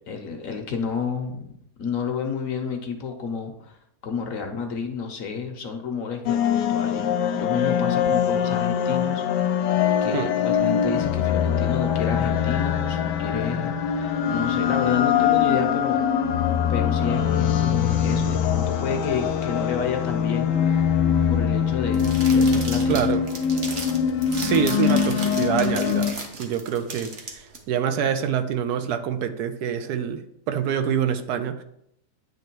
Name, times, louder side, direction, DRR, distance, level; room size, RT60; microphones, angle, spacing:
voice 1, 0.1-1.5 1.8-3.8 4.0-9.5 10.0-16.0 16.7-20.6 21.3-23.1, left 5 dB, 60° left, 4 dB, 1.1 m, -30 dB
sound 1, 6.3-26.1, left 8 dB, 90° left, 1.2 m, -23 dB
sound 2, 21.9-27.6, right 3 dB, 45° right, 1.1 m, -36 dB
voice 2, 22.9-23.2 24.3-26.1 26.4-31.6, right 8 dB, 75° right, 9 dB, 1.1 m, -26 dB
9.1 x 3.1 x 4.5 m, 0.76 s
omnidirectional pair, 1.8 m